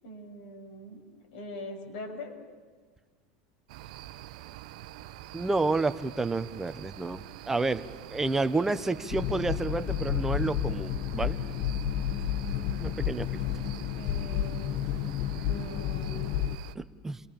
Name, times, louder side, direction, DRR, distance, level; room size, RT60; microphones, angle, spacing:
voice 1, 0.0-1.0 1.3-2.3 13.4-13.6 13.9-14.9 15.5-16.4, left 1 dB, 80° left, 1 dB, 6.9 m, -42 dB
sound 1, 3.7-16.7, right 14 dB, 75° right, 0.9 m, -46 dB
voice 2, 5.3-7.8 8.1-11.4 12.8-13.3 16.7-17.2, right 3 dB, 10° right, 11 dB, 1.0 m, -30 dB
sound 2, 9.1-16.6, left 10 dB, 50° left, 0.9 m, -31 dB
29.0 x 20.5 x 7.3 m, 1.4 s
supercardioid pair, 125°, 4 cm